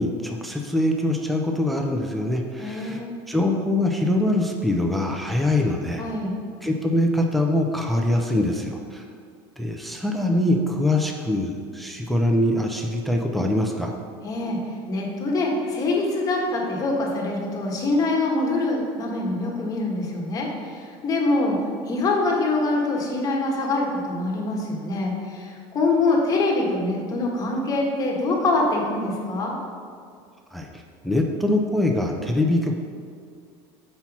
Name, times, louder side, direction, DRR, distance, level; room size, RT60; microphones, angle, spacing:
voice 1, 0.0-6.0 6.6-9.0 9.6-13.9 30.5-30.7 31.0-32.8, left 1 dB, ahead, 2 dB, 0.4 m, -23 dB
voice 2, 2.6-3.1 6.0-6.4 14.2-14.6 14.9-21.6 21.9-29.5, left 2 dB, 30° left, -1 dB, 1.3 m, -24 dB
5.6 x 4.5 x 5.9 m, 2.2 s
cardioid pair, 145°, 12 cm